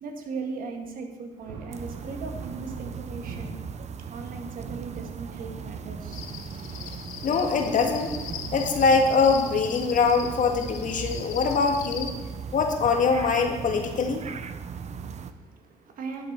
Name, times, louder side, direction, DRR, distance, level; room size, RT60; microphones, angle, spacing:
voice 1, 0.0-3.6 4.1-6.3 14.5-16.3, right 4 dB, 60° right, 3 dB, 1.9 m, -38 dB
Thunder, 1.3-15.2, right 4 dB, 75° right, 1.9 m, -46 dB
sound 1, 1.7-15.3, right 6 dB, 45° right, 0.7 m, -38 dB
Cricket, 6.1-12.1, left 9 dB, 90° left, 0.7 m, -40 dB
voice 2, 7.2-8.1 8.5-12.1 12.5-14.2, left 5 dB, 55° left, 4 dB, 1.7 m, -23 dB
12.0 x 7.4 x 4.4 m, 1.2 s
hypercardioid pair, 50°, 16 cm